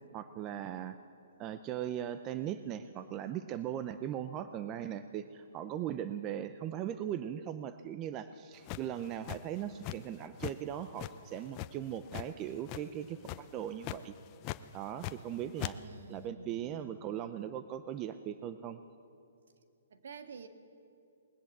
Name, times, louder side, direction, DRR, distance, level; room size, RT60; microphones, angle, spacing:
voice 1, 0.1-1.0 1.4-14.1 14.7-15.8 16.1-18.8, right 10 dB, 25° right, 11 dB, 0.6 m, -39 dB
sound 1, 8.7-10.1 10.4-10.6 11.0-12.3 12.6-13.0 13.2-13.5 13.8-14.0 14.4-15.3 15.6-15.7, left 16 dB, 30° left, 0.6 m, -39 dB
voice 2, 15.8-17.4 19.9-20.5, right 5 dB, 70° right, 7 dB, 1.9 m, -50 dB
20.0 x 19.5 x 7.4 m, 2.6 s
hypercardioid pair, 145°, 0 cm